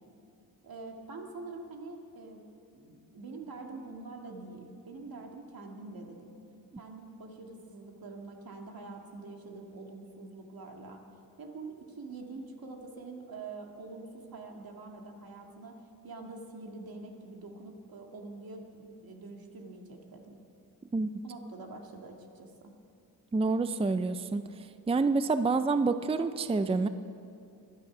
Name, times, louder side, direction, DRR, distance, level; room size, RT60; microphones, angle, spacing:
voice 1, 0.6-2.4 2.7-6.3 6.8-11.0 11.4-20.4 21.2-22.7, right 3 dB, 80° right, 2 dB, 2.1 m, -45 dB
voice 2, 23.3-24.4 24.9-26.9, right 3 dB, 15° right, 11 dB, 0.4 m, -27 dB
24.5 x 9.7 x 6.0 m, 2.6 s
wide cardioid pair, 115°, 35 cm